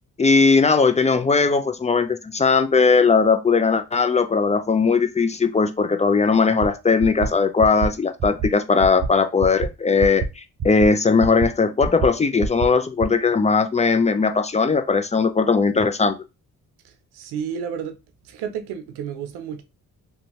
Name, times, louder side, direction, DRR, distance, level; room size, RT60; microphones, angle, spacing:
voice 1, 0.2-16.2, left 4 dB, 20° left, 0.4 m, -19 dB
sound 1, 6.6-6.7 7.0-7.3 7.6-7.9 8.2-8.5 8.8-9.1 9.4-9.7 10.0-10.3 10.6-10.9 11.2-11.5 11.8-12.1 12.4-12.7 13.0-13.1, right 6 dB, 45° right, 0.7 m, -25 dB
voice 2, 16.8-18.0 18.2-19.6, right 8 dB, 80° right, 0.6 m, -31 dB
2.6 x 2.3 x 2.9 m
supercardioid pair, 45°, 38 cm